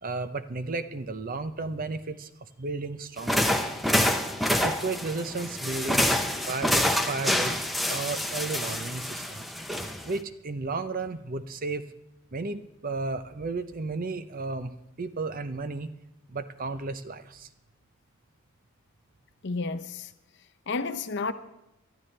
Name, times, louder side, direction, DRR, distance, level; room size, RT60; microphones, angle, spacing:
voice 1, 0.0-3.8 4.6-9.4 10.0-11.8 12.3-15.9 16.3-17.5, right 3 dB, 40° right, 0.6 m, -34 dB
sound 1, 3.2-10.2, left 1 dB, ahead, 0.7 m, -27 dB
voice 2, 19.4-20.1 20.7-21.3, left 3 dB, 50° left, 0.7 m, -31 dB
22.5 x 13.0 x 3.3 m
head